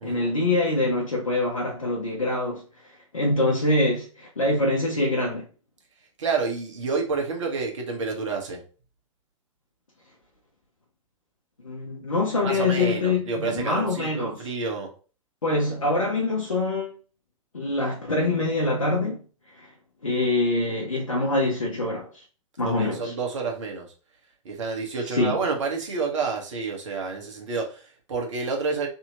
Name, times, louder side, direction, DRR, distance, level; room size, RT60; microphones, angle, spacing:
voice 1, 0.0-2.6 3.1-5.5 11.6-14.4 15.4-16.9 17.5-19.2 19.6-19.7 20.0-22.1 22.6-23.1 25.1-25.3, left 2 dB, 85° left, 0.9 m, -24 dB
voice 2, 6.2-8.6 12.4-14.9 22.6-23.9 24.4-28.9, right 4 dB, 65° right, 1.2 m, -29 dB
3.4 x 2.8 x 2.9 m
figure-of-eight pair, 95°, 17 cm